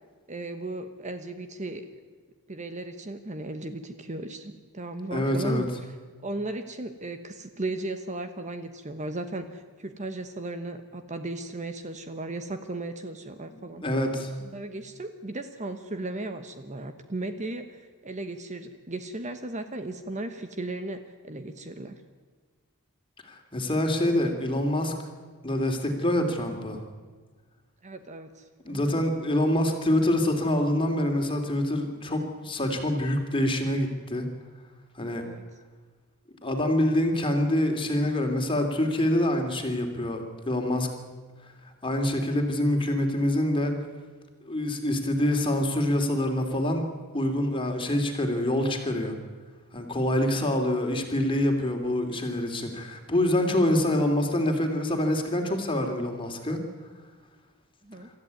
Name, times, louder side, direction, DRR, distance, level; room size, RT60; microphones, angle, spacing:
voice 1, 0.3-1.8 2.5-5.7 6.2-13.8 14.5-21.9 27.8-29.0 35.2-35.4 57.8-58.1, right 2 dB, 35° right, 8 dB, 1.1 m, -36 dB
voice 2, 5.1-5.6 13.5-14.3 23.2-24.9 25.4-26.8 28.6-34.3 35.0-35.2 36.4-40.9 41.8-43.7 44.4-46.8 47.1-49.1 49.7-56.6, left 1 dB, 25° left, 3 dB, 3.0 m, -26 dB
24.5 x 14.0 x 9.6 m, 1.4 s
head